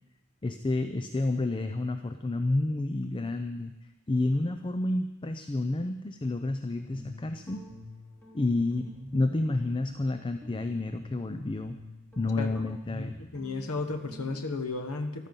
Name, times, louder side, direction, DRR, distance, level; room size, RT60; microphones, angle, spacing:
voice 1, 0.4-3.7 4.1-7.6 8.3-11.8 12.2-13.2, left 2 dB, 20° left, 8 dB, 0.5 m, -30 dB
Guitar, 6.7-14.7, left 1 dB, 5° left, 3.3 m, -47 dB
voice 2, 13.0-15.3, left 3 dB, 75° left, 6 dB, 1.2 m, -34 dB
14.5 x 12.5 x 5.4 m, 1.0 s
head